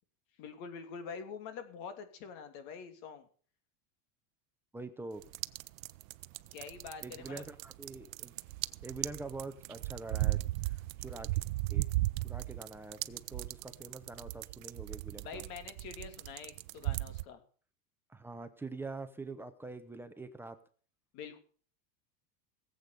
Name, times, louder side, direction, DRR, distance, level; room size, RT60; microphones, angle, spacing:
voice 1, 0.4-3.3 6.5-7.4 15.2-17.4 21.1-21.4, left 6 dB, 45° left, 9 dB, 2.9 m, -45 dB
voice 2, 4.7-5.2 7.0-8.3 8.8-11.4 11.7-11.9 12.2-15.4 18.1-20.6, right 3 dB, 5° right, 8 dB, 0.7 m, -45 dB
sound 1, 5.2-17.2, right 18 dB, 65° right, 0.7 m, -36 dB
18.5 x 8.2 x 6.8 m, 0.43 s
supercardioid pair, 155°, 44 cm